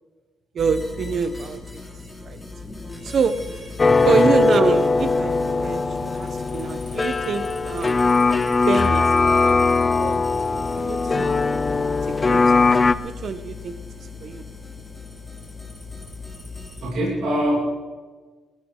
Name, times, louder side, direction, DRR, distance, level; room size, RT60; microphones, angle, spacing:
voice 1, 0.5-1.6 2.2-2.4 3.0-3.5 4.0-8.0 8.7-9.6 10.0-11.3 12.1-12.6 13.0-14.4, right 5 dB, 55° right, 1.1 m, -26 dB
sound 1, 0.6-16.9, left 3 dB, ahead, 4.1 m, -37 dB
sound 2, 3.8-12.9, left 4 dB, 30° left, 0.6 m, -20 dB
voice 2, 3.8-4.2 16.8-17.6, equal, 70° right, 6.8 m, -24 dB
Keyboard (musical), 4.4-7.2, right 2 dB, 35° right, 1.3 m, -35 dB
20.5 x 16.0 x 4.0 m
cardioid pair, 90°, 0 cm